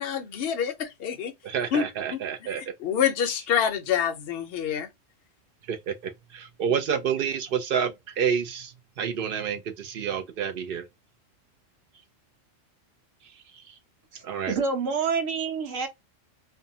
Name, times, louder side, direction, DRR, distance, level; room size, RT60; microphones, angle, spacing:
voice 1, 0.0-1.3 1.7-2.2 2.6-4.9, left 8 dB, 60° left, 0.7 m, -27 dB
voice 2, 1.4-2.6 5.7-10.8 13.7-13.8 14.2-14.6, right 7 dB, 60° right, 0.6 m, -29 dB
voice 3, 14.1-15.9, right 5 dB, 80° right, 1.2 m, -28 dB
2.6 x 2.1 x 2.6 m
omnidirectional pair, 1.3 m